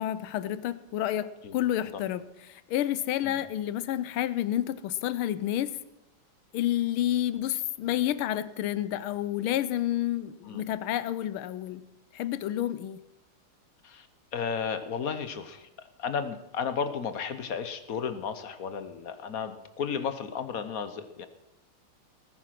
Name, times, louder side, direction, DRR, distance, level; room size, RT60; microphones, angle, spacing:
voice 1, 0.0-5.8 6.5-11.8 12.1-13.0, left 12 dB, 85° left, 15 dB, 1.6 m, -29 dB
voice 2, 14.3-15.7 16.0-21.3, left 6 dB, 50° left, 10 dB, 1.2 m, -33 dB
19.0 x 9.7 x 6.0 m, 0.90 s
omnidirectional pair, 2.3 m